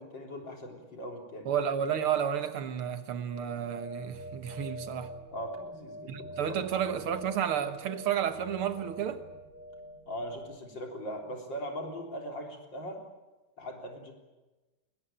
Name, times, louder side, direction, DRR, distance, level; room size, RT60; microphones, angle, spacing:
voice 1, 0.0-1.5 5.3-6.6 10.1-13.0 13.6-14.1, equal, 55° left, 4.5 m, -40 dB
voice 2, 1.5-5.2 6.1-9.2, right 8 dB, 75° right, 2.3 m, -31 dB
sound 1, 3.3-10.6, equal, 40° right, 3.7 m, -45 dB
22.5 x 20.5 x 9.0 m
omnidirectional pair, 2.4 m